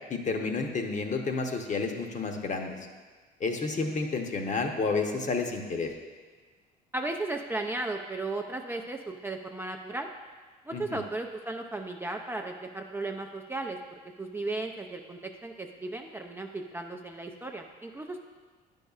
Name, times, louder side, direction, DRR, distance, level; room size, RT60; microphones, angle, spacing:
voice 1, 0.1-2.8 3.4-5.9 10.7-11.0, left 4 dB, 40° left, 4 dB, 0.9 m, -30 dB
voice 2, 6.9-10.1 10.7-18.2, right 2 dB, 10° right, 2 dB, 0.4 m, -35 dB
9.8 x 5.4 x 2.4 m, 1.4 s
supercardioid pair, 75°, 20 cm